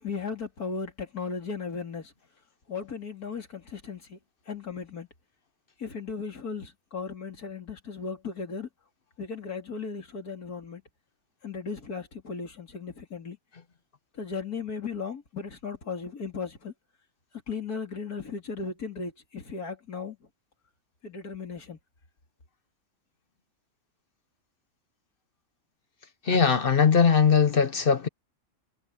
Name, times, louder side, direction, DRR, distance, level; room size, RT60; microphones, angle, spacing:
voice 1, 0.0-2.1 2.7-4.2 4.5-5.1 5.8-8.7 9.2-10.8 11.4-13.4 14.1-16.7 17.5-20.2 21.0-21.8, left 5 dB, 85° left, 3.6 m, -36 dB
voice 2, 26.3-28.1, left 6 dB, 45° left, 0.9 m, -20 dB
omnidirectional pair, 1.6 m